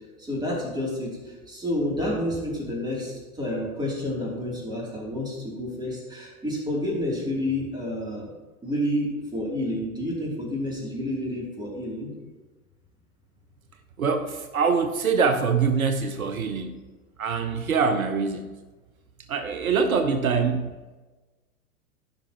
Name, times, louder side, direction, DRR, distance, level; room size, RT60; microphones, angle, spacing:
voice 1, 0.3-1.2 1.5-8.3 8.6-12.1, left 1 dB, 10° right, -4 dB, 2.9 m, -29 dB
voice 2, 14.0-16.8 17.2-18.5 19.3-20.7, right 5 dB, 75° right, 8 dB, 0.8 m, -24 dB
14.5 x 5.8 x 3.0 m, 1.2 s
figure-of-eight pair, 100°, 43 cm